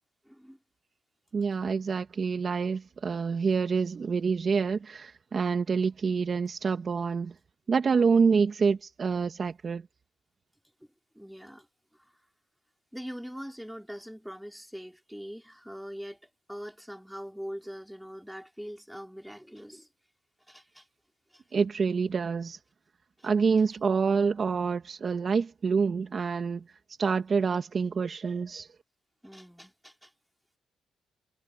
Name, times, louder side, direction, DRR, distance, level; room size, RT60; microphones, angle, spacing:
voice 1, 0.2-0.6 11.1-11.7 11.9-12.1 12.9-19.9 20.5-20.8 21.3-21.4 23.2-23.3 29.2-30.1, equal, ahead, 2.9 m, -42 dB
voice 2, 1.3-7.3 7.7-9.9 21.5-22.6 23.2-26.6 27.0-28.7, right 5 dB, 40° right, 1.8 m, -27 dB
cardioid pair, 90°, 0 cm